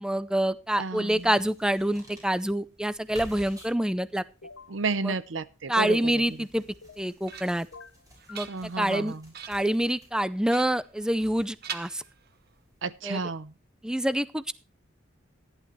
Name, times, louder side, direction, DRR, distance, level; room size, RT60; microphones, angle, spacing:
voice 1, 0.0-4.2 5.0-5.1 5.7-6.6 7.0-7.7 8.3-8.5 8.8-9.1 9.5-12.0 13.0-13.2 13.8-14.5, right 1 dB, 5° right, 15 dB, 0.5 m, -26 dB
voice 2, 0.8-1.3 4.7-6.2 8.5-9.3 12.8-13.5, right 4 dB, 75° right, 15 dB, 0.8 m, -32 dB
sound 1, 1.1-12.9, equal, 20° right, 6.9 m, -53 dB
sound 2, 4.4-4.8 6.8-7.4 7.7-8.5, left 4 dB, 80° left, 0.9 m, -48 dB
sound 3, 6.8-7.7 8.1-8.9 9.3-9.8 10.5-11.3 11.6-12.6, right 8 dB, 55° right, 1.0 m, -42 dB
14.5 x 11.5 x 3.1 m, 0.31 s
head